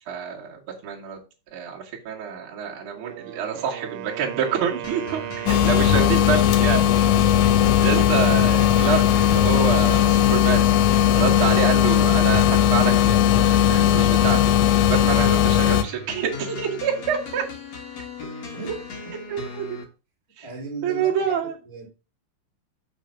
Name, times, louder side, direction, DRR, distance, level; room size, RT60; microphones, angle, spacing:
voice 1, 0.1-1.2 1.5-6.8 7.8-10.6 11.2-14.4 14.9-17.4 19.3-19.7 20.4-20.5 20.8-21.5, right 7 dB, 65° right, -2 dB, 1.3 m, -27 dB
Wind instrument woodwind instrument, 2.8-6.7, right 14 dB, 80° right, 3.1 m, -36 dB
sound 1, 4.8-19.8, left 4 dB, 65° left, 1.6 m, -38 dB
sound 2, 5.5-15.8, left 11 dB, 85° left, 3.1 m, -18 dB
voice 2, 5.6-6.7 11.1-11.4 18.5-19.1 20.4-21.9, right 4 dB, 20° left, -2 dB, 0.8 m, -36 dB
6.6 x 5.9 x 5.8 m, 0.31 s
omnidirectional pair, 5.6 m